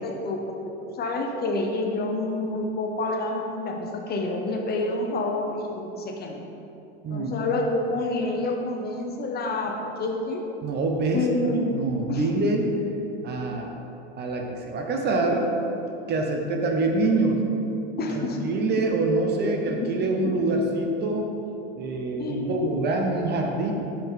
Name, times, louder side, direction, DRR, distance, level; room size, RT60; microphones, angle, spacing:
voice 1, 0.0-6.4 7.1-10.4 11.1-11.8 12.1-12.3 18.0-18.4 19.8-19.9 20.2-20.4 22.2-22.6, left 2 dB, 30° left, 2 dB, 0.8 m, -28 dB
voice 2, 7.0-7.4 10.6-11.2 11.7-12.7 13.2-13.7 14.2-15.5 16.1-17.4 18.1-21.3 21.8-23.7, right 2 dB, 30° right, 2 dB, 0.8 m, -25 dB
7.0 x 5.6 x 3.8 m, 2.9 s
hypercardioid pair, 110°, 33 cm